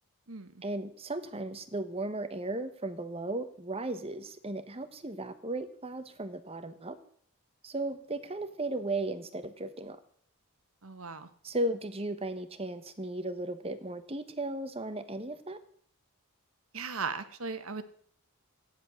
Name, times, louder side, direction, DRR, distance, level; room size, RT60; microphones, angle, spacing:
voice 1, 0.6-7.0 7.6-10.0 11.4-15.6, right 2 dB, 25° right, 11 dB, 1.1 m, -36 dB
voice 2, 10.8-11.3 16.7-17.8, right 5 dB, 70° right, 10 dB, 1.4 m, -37 dB
15.0 x 10.0 x 6.4 m, 0.62 s
head